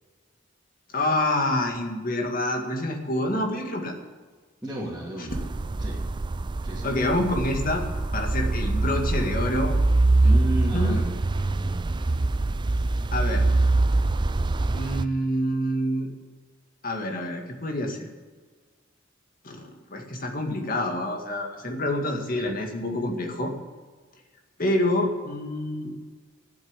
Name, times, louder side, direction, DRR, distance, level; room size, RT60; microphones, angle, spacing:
voice 1, 0.9-3.9 5.2-5.3 6.8-7.8 8.1-9.7 10.7-10.9 13.1-13.5 14.7-16.1 16.8-18.1 19.4-23.5 24.6-25.9, left 1 dB, 45° left, 3 dB, 2.1 m, -27 dB
voice 2, 4.6-5.4 5.8-6.0 6.6-6.9 10.2-11.0, right 1 dB, 5° right, -10 dB, 2.8 m, -32 dB
sound 1, 5.3-15.0, right 2 dB, 25° right, 0.4 m, -24 dB
12.0 x 8.1 x 10.0 m, 1.5 s
head